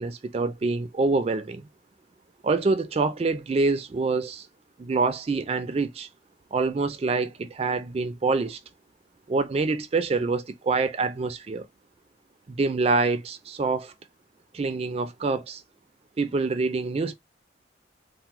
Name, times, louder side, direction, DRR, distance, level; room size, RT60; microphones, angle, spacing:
voice 1, 0.0-1.7 2.4-4.5 4.8-6.1 6.5-8.6 9.3-11.7 12.5-13.9 14.5-15.6 16.2-17.1, right 3 dB, 30° right, 0.3 m, -26 dB
3.4 x 2.1 x 2.9 m
head